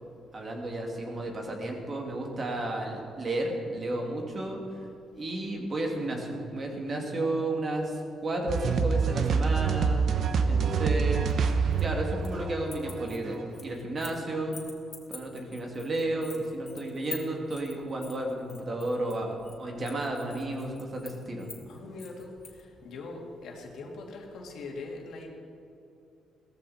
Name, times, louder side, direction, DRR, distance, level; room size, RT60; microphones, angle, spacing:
voice 1, 0.3-4.6 5.1-10.1 10.5-11.3 11.8-14.6 15.1-21.5, right 1 dB, 40° right, 1 dB, 2.7 m, -32 dB
sound 1, 8.5-13.4, right 5 dB, 65° right, 1.0 m, -26 dB
voice 2, 10.1-10.5 21.7-22.3 22.8-25.3, left 3 dB, 75° left, 0 dB, 2.5 m, -42 dB
sound 2, 11.3-12.4 12.7-14.2 14.5-22.6, left 4 dB, 35° left, 2.7 m, -46 dB
16.5 x 14.5 x 4.4 m, 2.6 s
cardioid pair, 90°, 0 cm